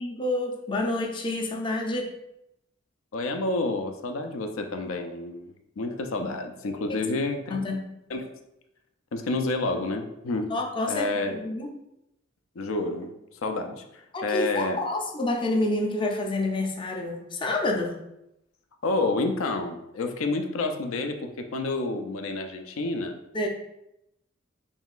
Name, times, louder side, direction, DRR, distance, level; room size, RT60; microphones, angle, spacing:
voice 1, 0.0-2.1 6.9-7.0 7.5-7.9 10.4-11.7 14.1-18.0 23.3-23.5, left 2 dB, 25° left, 2 dB, 0.4 m, -28 dB
voice 2, 3.1-7.6 8.1-8.3 9.1-10.5 10.9-11.4 12.6-13.1 13.4-14.8 18.8-23.2, left 2 dB, 85° left, 6 dB, 0.5 m, -29 dB
5.4 x 3.1 x 2.4 m, 0.84 s
head